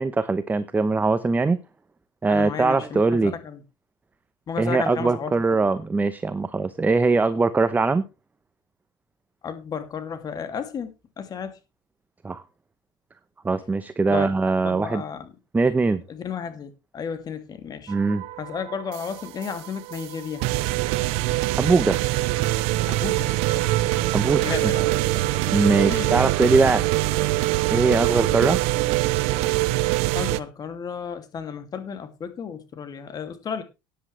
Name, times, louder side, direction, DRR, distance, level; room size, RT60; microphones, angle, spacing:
voice 1, 0.0-1.6 2.2-3.3 4.6-8.0 12.2-12.4 13.4-15.0 15.5-16.0 17.9-18.2 21.6-22.0 24.1-24.5 25.5-26.9 27.7-28.6, right 3 dB, 15° right, 0.9 m, -21 dB
voice 2, 2.3-3.6 4.5-5.3 9.4-11.6 14.1-14.3 14.6-15.3 16.1-17.9 18.4-20.5 22.9-23.9 24.3-24.9 25.5-26.2 26.7-26.8 30.1-33.6, left 7 dB, 35° left, 2.5 m, -33 dB
sound 1, 17.9-30.4, right 17 dB, 70° right, 0.8 m, -24 dB
14.0 x 10.0 x 3.3 m
supercardioid pair, 100°, 11 cm